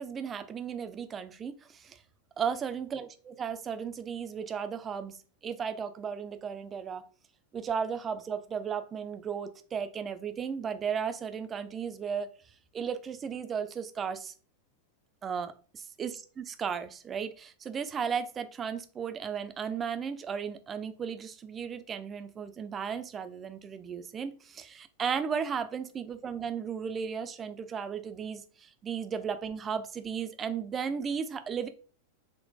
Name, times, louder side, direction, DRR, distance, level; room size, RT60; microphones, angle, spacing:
voice 1, 0.0-2.0 2.4-5.1 5.4-7.1 7.5-12.3 12.7-14.3 15.2-31.7, right 7 dB, 25° right, 9 dB, 0.3 m, -35 dB
3.7 x 2.1 x 2.6 m, 0.39 s
figure-of-eight pair, 90°, 0 cm